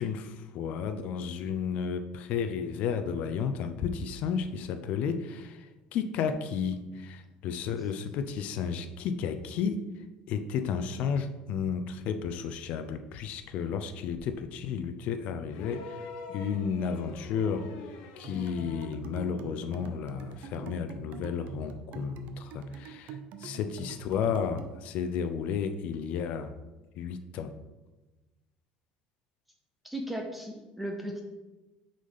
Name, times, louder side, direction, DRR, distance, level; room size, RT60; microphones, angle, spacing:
voice 1, 0.0-9.8 10.3-16.0 16.3-17.7 18.2-26.5 27.0-27.5, left 6 dB, 55° left, 9 dB, 0.6 m, -32 dB
sound 1, 15.5-19.0 20.4-20.5, left 4 dB, 85° left, 0.9 m, -45 dB
sound 2, 18.2-24.8, right 6 dB, 55° right, 0.6 m, -45 dB
voice 2, 29.8-31.2, right 1 dB, 5° right, 2 dB, 0.7 m, -36 dB
6.2 x 4.1 x 5.6 m, 1.1 s
cardioid pair, 155°, 3 cm